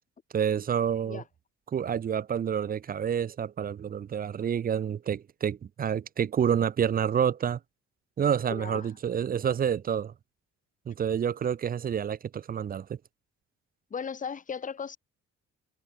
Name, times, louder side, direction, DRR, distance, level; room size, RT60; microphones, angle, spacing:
voice 1, 0.3-1.2 1.7-7.6 8.2-10.1 10.9-13.0, right 8 dB, 30° right, 0.4 m, -28 dB
voice 2, 8.5-8.9 13.9-15.0, left 6 dB, 25° left, 0.8 m, -36 dB
cardioid pair, 90°, 30 cm